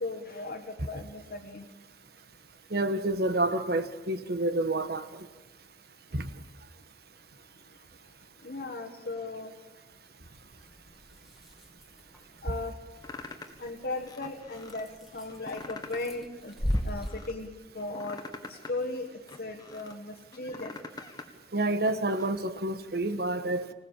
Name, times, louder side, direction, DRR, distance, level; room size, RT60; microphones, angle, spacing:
voice 1, 0.0-1.6 8.4-9.5 12.4-12.7 13.6-16.5 16.8-17.5 17.7-18.2 18.7-19.1 19.4-20.8, left 2 dB, 55° left, 1 dB, 1.6 m, -36 dB
voice 2, 2.7-5.0 6.1-6.3 21.5-23.7, right 2 dB, 60° right, 11 dB, 1.4 m, -28 dB
sound 1, 10.3-17.3, equal, ahead, 2.4 m, -38 dB
sound 2, 13.0-13.6 14.1-14.8 15.3-16.2 16.5-17.3 17.8-19.9 20.3-21.3 21.6-22.3, left 3 dB, 25° left, 1.6 m, -44 dB
25.5 x 18.0 x 7.4 m, 1.2 s
head